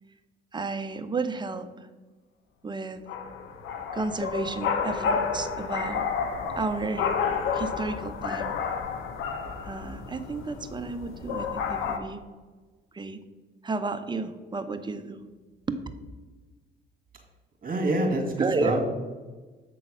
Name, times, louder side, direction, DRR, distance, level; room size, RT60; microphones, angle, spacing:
voice 1, 0.5-1.9 2.6-3.0 3.9-6.1 6.6-7.1 7.5-8.6 9.6-12.2 12.9-13.2 13.6-15.2 15.7-15.8 18.4-18.8, right 3 dB, 20° right, 9 dB, 0.7 m, -32 dB
sound 1, 3.1-12.0, left 6 dB, 85° left, 0.8 m, -30 dB
voice 2, 17.6-18.8, right 1 dB, 45° right, 2 dB, 2.1 m, -26 dB
7.6 x 3.9 x 6.2 m, 1.3 s
cardioid pair, 90°, 20 cm